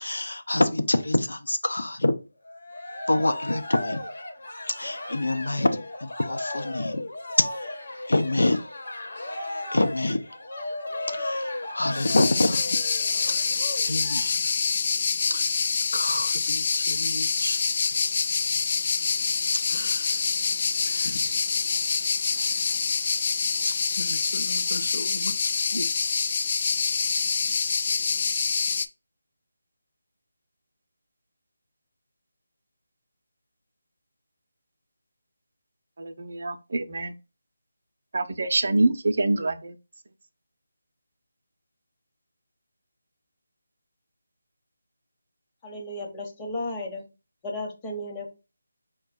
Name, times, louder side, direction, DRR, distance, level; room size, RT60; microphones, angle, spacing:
voice 1, 0.0-2.1 3.1-4.0 4.7-5.7 6.0-7.0 8.1-8.6 9.7-10.2 11.1-12.6 13.4-13.5 13.8-14.4 15.3-15.4 15.9-18.6 19.7-20.1 20.9-21.2 23.6-25.8, left 2 dB, 85° left, 0.7 m, -27 dB
Cheering, 2.5-14.2, left 1 dB, 70° left, 1.0 m, -35 dB
sound 1, 11.9-28.9, left 5 dB, 40° left, 0.3 m, -26 dB
voice 2, 36.0-37.1 38.1-39.7, right 2 dB, 55° right, 0.5 m, -25 dB
voice 3, 45.6-47.0 47.4-48.3, left 1 dB, 15° left, 0.9 m, -34 dB
4.9 x 2.2 x 4.1 m
figure-of-eight pair, 165°, 0 cm